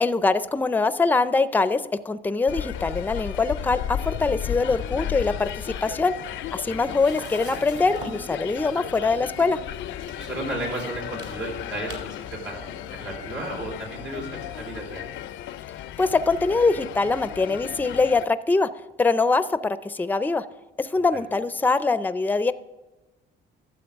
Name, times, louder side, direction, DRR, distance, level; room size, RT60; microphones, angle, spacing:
voice 1, 0.0-6.1 6.5-9.6 16.0-18.7 19.0-20.4 20.8-22.5, left 3 dB, 10° left, 14 dB, 0.4 m, -23 dB
sound 1, 2.5-18.3, left 11 dB, 70° left, 0.4 m, -34 dB
sound 2, 6.1-14.4, right 3 dB, 60° right, 2.9 m, -47 dB
voice 2, 10.2-15.1 20.9-21.0, right 1 dB, 85° right, -2 dB, 3.4 m, -34 dB
12.5 x 7.5 x 3.5 m, 1.1 s
cardioid pair, 90°, 20 cm